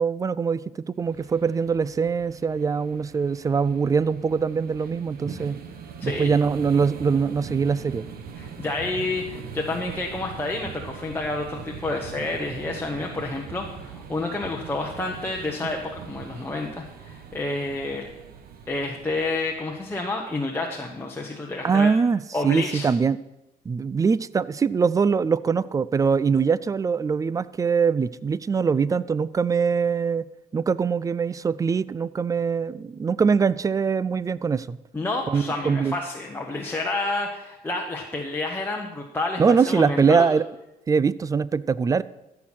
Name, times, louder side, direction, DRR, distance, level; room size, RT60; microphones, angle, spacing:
voice 1, 0.0-5.6 6.0-8.0 21.6-23.2 23.7-34.8 35.3-36.0 39.4-40.5 40.9-42.0, right 5 dB, 20° right, 19 dB, 0.3 m, -23 dB
sound 1, 1.0-20.1, right 6 dB, 65° right, 1.2 m, -41 dB
voice 2, 8.4-18.1 18.7-21.9 22.3-22.9 34.9-39.4 39.7-40.3, left 2 dB, 15° left, -1 dB, 1.1 m, -29 dB
14.0 x 5.8 x 6.2 m, 0.96 s
cardioid pair, 110°, 17 cm